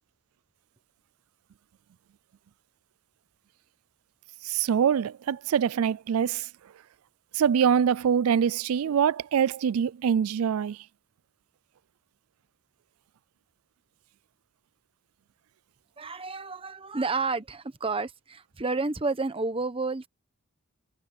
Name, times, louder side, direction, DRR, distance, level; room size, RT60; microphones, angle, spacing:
voice 1, 4.4-6.5 7.3-10.8, right 7 dB, 80° right, 0.4 m, -24 dB
voice 2, 16.0-20.1, right 3 dB, 25° right, 0.9 m, -30 dB
head